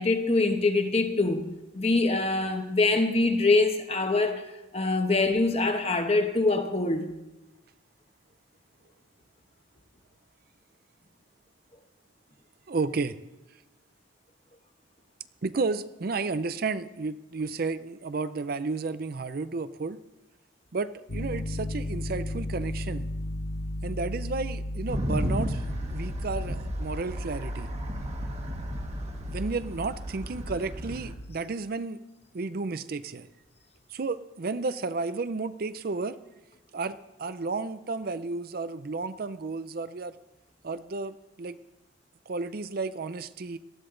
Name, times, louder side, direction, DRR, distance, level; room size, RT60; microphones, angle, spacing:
voice 1, 0.0-1.5 1.7-4.4 4.7-7.1, left 3 dB, 35° left, 1.2 m, -24 dB
voice 2, 12.7-13.2 15.4-20.0 20.7-23.1 23.8-27.7 29.3-32.0 32.3-33.3 33.9-36.2 36.7-40.2 40.6-41.6 42.3-43.6, right 3 dB, 50° right, 0.5 m, -32 dB
Piano, 21.1-31.4, left 1 dB, 80° left, 1.3 m, -35 dB
sound 1, 24.9-31.1, equal, 35° right, 1.5 m, -34 dB
18.5 x 13.0 x 3.8 m
head